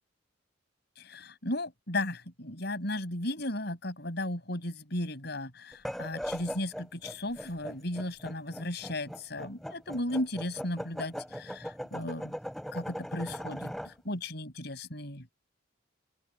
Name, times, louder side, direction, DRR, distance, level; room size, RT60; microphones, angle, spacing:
voice 1, 1.0-12.3 12.7-15.3, left 1 dB, 55° left, 6.1 m, -35 dB
sound 1, 5.7-13.9, equal, ahead, 7.2 m, -39 dB
open air
head